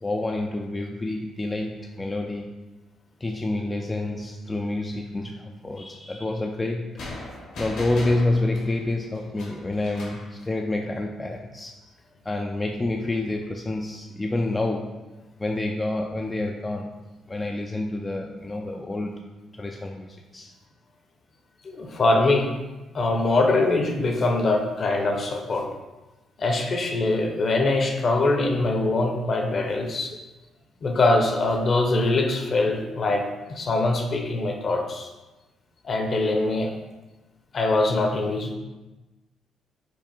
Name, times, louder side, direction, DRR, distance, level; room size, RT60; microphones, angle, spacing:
voice 1, 0.0-2.5 3.2-7.1 7.6-11.7 12.2-15.0 15.4-17.0 17.3-19.3 19.5-20.5, left 2 dB, 20° left, 1 dB, 0.3 m, -28 dB
sound 1, 7.0-10.3, left 2 dB, 80° left, 1.3 m, -38 dB
voice 2, 21.6-22.5 22.9-25.7 26.4-30.1 30.8-33.2 33.5-35.1 35.8-36.7 37.5-38.6, left 2 dB, 45° left, 3 dB, 0.7 m, -23 dB
4.5 x 2.5 x 4.3 m, 1.1 s
cardioid pair, 90°, 0 cm